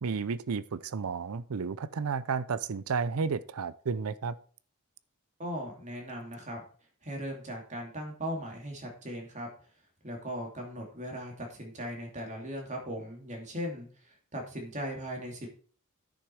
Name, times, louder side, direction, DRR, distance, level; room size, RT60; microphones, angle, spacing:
voice 1, 0.0-4.3, right 5 dB, 75° right, 17 dB, 0.5 m, -32 dB
voice 2, 5.4-6.6 7.0-9.5 10.0-13.9 14.3-15.5, equal, 35° right, 1 dB, 2.9 m, -38 dB
10.0 x 6.3 x 4.7 m, 0.42 s
head